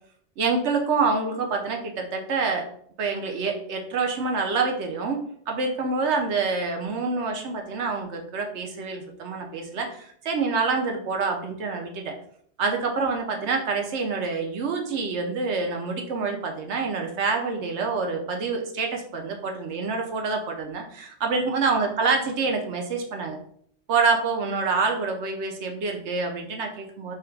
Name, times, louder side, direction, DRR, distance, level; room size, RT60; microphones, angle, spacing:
voice 1, 0.4-2.6 3.0-5.2 5.5-12.1 12.6-23.4 23.9-27.1, right 4 dB, 80° right, 3 dB, 1.0 m, -26 dB
3.3 x 2.5 x 4.4 m, 0.63 s
omnidirectional pair, 1.2 m